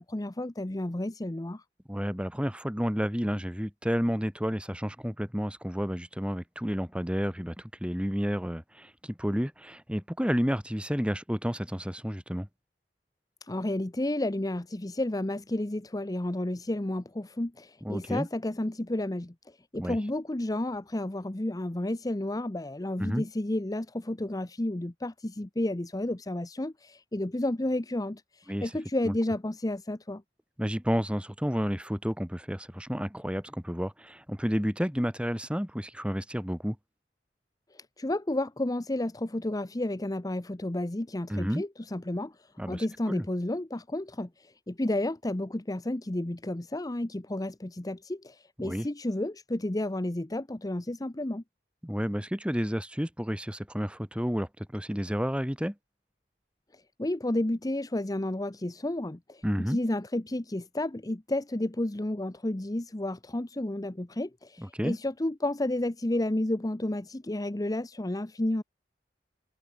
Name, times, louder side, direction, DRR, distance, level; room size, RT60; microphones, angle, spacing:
voice 1, 0.0-1.6 13.4-30.2 37.7-51.4 56.7-68.6, left 1 dB, 20° left, 0.8 m, -31 dB
voice 2, 1.9-12.5 17.8-18.3 19.8-20.0 23.0-23.2 28.5-28.7 29.0-29.1 30.6-36.8 41.3-41.6 42.6-43.2 48.6-48.9 51.8-55.8 59.4-59.8 64.6-65.0, equal, 5° right, 3.6 m, -31 dB
head